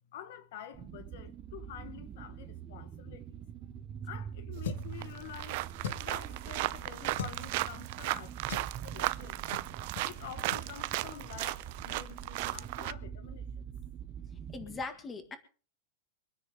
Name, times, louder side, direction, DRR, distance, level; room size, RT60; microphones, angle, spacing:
voice 1, 0.1-3.3 4.0-5.6 6.0-9.5 10.0-13.5, left 10 dB, 55° left, 1.1 m, -48 dB
sound 1, 0.7-14.8, right 8 dB, 20° right, 0.9 m, -44 dB
sound 2, 4.6-5.0 5.8-6.2 7.1-7.4 8.5-8.8 9.5-9.7 10.0-10.1 10.5-10.7, left 7 dB, 75° left, 1.4 m, -39 dB
sound 3, 4.6-4.7 5.0-12.9, right 19 dB, 45° right, 0.6 m, -36 dB
voice 2, 14.5-15.4, left 4 dB, 15° left, 1.8 m, -40 dB
24.5 x 9.7 x 3.6 m
supercardioid pair, 170°, 0 cm